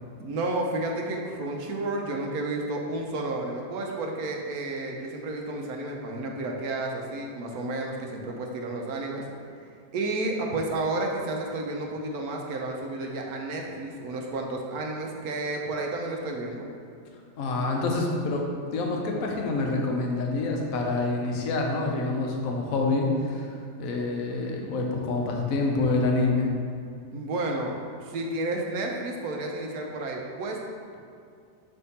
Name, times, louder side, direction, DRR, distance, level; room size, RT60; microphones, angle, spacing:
voice 1, 0.2-9.2 9.9-16.7 27.1-27.7 28.0-30.6, right 2 dB, 65° right, 1 dB, 1.1 m, -31 dB
voice 2, 17.4-23.5 23.8-26.5, left 3 dB, 60° left, 0 dB, 1.1 m, -27 dB
6.6 x 3.6 x 4.1 m, 2.4 s
omnidirectional pair, 1.8 m